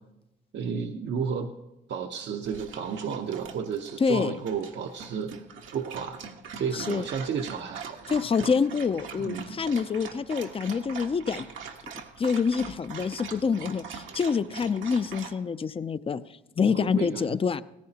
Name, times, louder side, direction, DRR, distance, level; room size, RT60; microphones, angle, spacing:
voice 1, 0.5-1.5 1.9-5.3 5.7-6.2 6.6-8.5 9.2-9.6 16.6-17.3, right 6 dB, 65° right, 3 dB, 0.9 m, -32 dB
Dog, 2.4-15.3, right 6 dB, 80° right, 1.3 m, -43 dB
voice 2, 4.0-4.4 6.7-7.1 8.1-11.5 12.2-16.2 16.6-17.6, left 5 dB, 30° left, 14 dB, 0.5 m, -26 dB
17.0 x 15.0 x 2.9 m, 0.93 s
cardioid pair, 90°, 20 cm